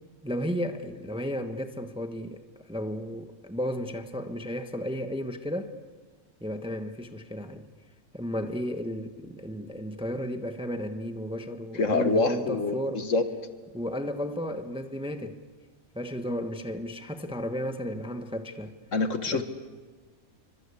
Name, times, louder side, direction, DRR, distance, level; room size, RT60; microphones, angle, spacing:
voice 1, 0.2-2.4 2.7-5.7 6.4-7.7 8.1-13.1 13.7-15.4 15.9-18.7 19.3-19.4, equal, 5° right, 1.1 m, -33 dB
voice 2, 11.8-13.2 18.9-19.4, left 3 dB, 55° left, 1.9 m, -25 dB
28.0 x 24.5 x 8.5 m
omnidirectional pair, 1.6 m